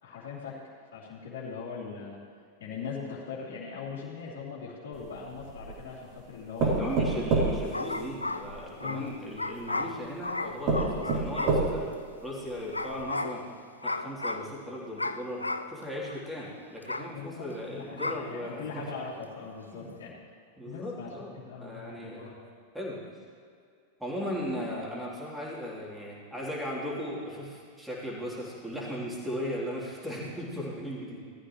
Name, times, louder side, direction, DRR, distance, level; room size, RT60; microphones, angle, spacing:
voice 1, 0.0-2.2 2.6-7.1 8.8-9.1 17.1-20.1 20.6-22.4, left 5 dB, 55° left, -10 dB, 3.0 m, -40 dB
sound 1, 4.9-5.8 6.6-8.6 9.5-9.6 10.2-10.3 10.7-12.0 12.5-12.6 12.9-13.0, right 3 dB, 40° right, 3.6 m, -28 dB
voice 2, 6.6-11.9 12.2-13.5 13.8-18.9 19.7-19.9 20.6-22.4 22.7-23.0 24.0-31.3, equal, 5° right, -5 dB, 3.6 m, -37 dB
sound 2, 7.7-11.9 12.7-13.5 13.8-14.6 15.0-15.8 16.1-16.2 16.8-17.1 18.0-18.3, left 2 dB, 80° left, 0.5 m, -34 dB
19.5 x 13.5 x 3.2 m, 2.3 s
figure-of-eight pair, 90°, 0 cm